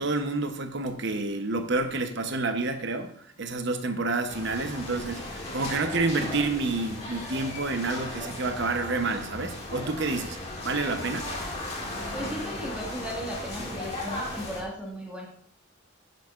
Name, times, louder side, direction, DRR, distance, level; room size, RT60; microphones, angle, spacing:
voice 1, 0.0-10.4 10.6-11.3, right 3 dB, 60° right, 6 dB, 0.8 m, -29 dB
sound 1, 4.3-14.6, left 1 dB, 30° left, 2.0 m, -36 dB
voice 2, 12.1-15.3, equal, 5° right, -2 dB, 1.6 m, -36 dB
11.0 x 8.0 x 2.5 m, 0.65 s
head